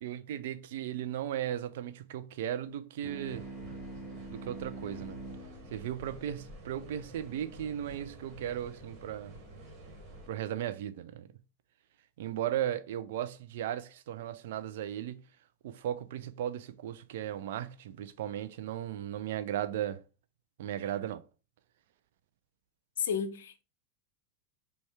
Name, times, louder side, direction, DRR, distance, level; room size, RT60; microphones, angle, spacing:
voice 1, 0.0-3.5 4.3-5.2 5.7-9.4 10.3-11.3 12.2-15.2 15.6-20.0 20.6-21.2, right 11 dB, 55° right, 0.4 m, -36 dB
sound 1, 3.0-7.9, right 3 dB, 5° left, 1.0 m, -46 dB
sound 2, 3.3-10.3, right 1 dB, 30° right, 1.6 m, -50 dB
voice 2, 23.0-23.6, left 7 dB, 60° left, 0.5 m, -32 dB
5.1 x 2.3 x 3.3 m
figure-of-eight pair, 90°, 0 cm